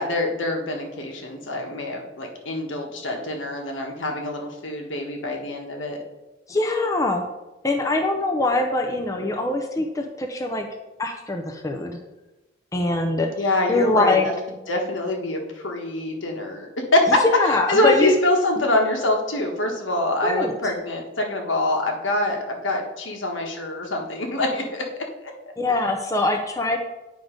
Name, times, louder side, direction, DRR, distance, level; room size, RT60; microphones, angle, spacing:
voice 1, 0.0-6.0 13.4-14.2 14.7-17.2 17.5-24.8, left 1 dB, 85° left, 2 dB, 1.4 m, -24 dB
voice 2, 6.5-7.2 7.6-10.7 11.0-12.0 12.7-13.3 13.7-14.3 17.2-18.1 20.2-20.5 25.6-26.8, left 2 dB, 15° left, 3 dB, 0.5 m, -23 dB
9.4 x 3.8 x 5.1 m, 1.0 s
head